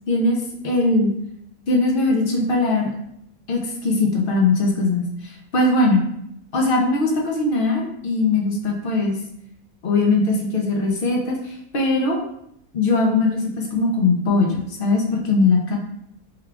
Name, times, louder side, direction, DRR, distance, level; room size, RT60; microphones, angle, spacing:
voice 1, 0.1-1.1 1.7-2.9 3.5-6.1 6.5-9.2 9.8-12.2 12.7-15.8, left 3 dB, 60° left, 0 dB, 0.6 m, -20 dB
3.6 x 2.3 x 3.3 m, 0.75 s
omnidirectional pair, 1.6 m